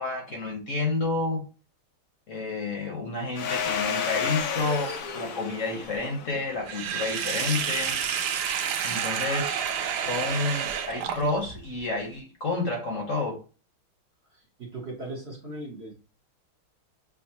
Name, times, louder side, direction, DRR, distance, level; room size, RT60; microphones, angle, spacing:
voice 1, 0.0-1.5 2.3-8.0 8.8-9.7 10.0-13.4, left 3 dB, 50° left, 1.0 m, -30 dB
Domestic sounds home sounds, 3.3-7.8, left 7 dB, 85° left, 0.7 m, -32 dB
Sink (filling or washing), 6.7-11.6, right 8 dB, 70° right, 1.0 m, -29 dB
voice 2, 14.2-15.9, right 2 dB, 50° right, 0.8 m, -38 dB
6.3 x 2.5 x 2.8 m
omnidirectional pair, 2.4 m